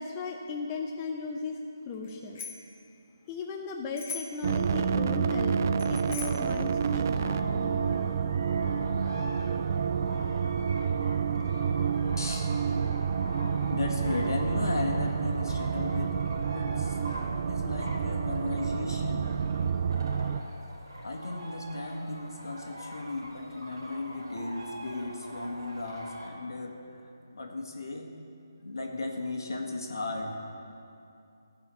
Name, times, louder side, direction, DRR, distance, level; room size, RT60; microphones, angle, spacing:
voice 1, 0.0-1.6 1.9-2.4 3.3-5.6 5.9-7.8, left 4 dB, 20° left, 1 dB, 0.6 m, -36 dB
Bicycle bell, 2.0-2.7 3.9-4.5 5.8-6.5, left 5 dB, 40° left, 1.3 m, -41 dB
sound 1, 4.4-20.4, right 6 dB, 45° right, 0.4 m, -29 dB
sound 2, 6.8-26.3, right 1 dB, 85° right, 3.3 m, -44 dB
voice 2, 12.2-12.6 13.7-16.2 16.5-17.1 17.5-19.3 21.0-26.7 27.3-28.1 28.6-30.4, left 2 dB, 75° left, 1 dB, 1.8 m, -35 dB
15.0 x 5.6 x 6.9 m, 2.6 s
figure-of-eight pair, 155°, 2 cm